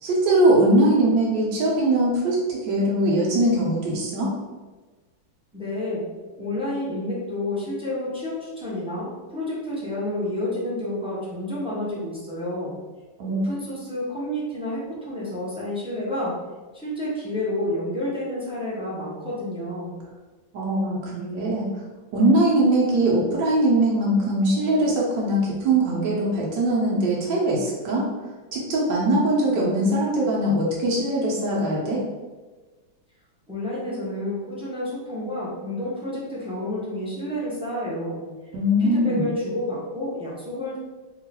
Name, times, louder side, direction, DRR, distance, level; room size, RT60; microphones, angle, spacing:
voice 1, 0.0-4.3 13.2-13.4 20.5-21.7 22.1-28.1 28.5-32.0 38.5-39.3, right 1 dB, 75° right, -5 dB, 1.4 m, -21 dB
voice 2, 5.5-6.0 6.4-12.7 13.3-16.3 16.7-19.9 33.5-38.2 38.8-40.8, left 1 dB, 5° right, -8 dB, 0.7 m, -30 dB
3.0 x 3.0 x 4.1 m, 1.3 s
omnidirectional pair, 2.0 m